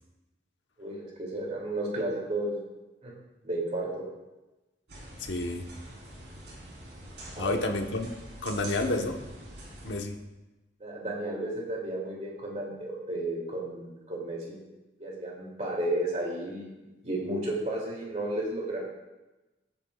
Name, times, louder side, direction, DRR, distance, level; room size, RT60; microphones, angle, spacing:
voice 1, 0.8-2.6 3.0-3.1 3.4-4.0 7.3-7.6 10.8-14.6 15.0-16.7 17.0-18.8, right 1 dB, 35° right, -3 dB, 2.8 m, -33 dB
sound 1, 4.9-10.0, right 1 dB, 65° right, 4.1 m, -45 dB
voice 2, 5.2-5.7 7.4-8.1 8.4-9.2 9.8-10.2, left 2 dB, 80° left, 3 dB, 1.2 m, -30 dB
17.5 x 8.7 x 2.4 m, 1.1 s
head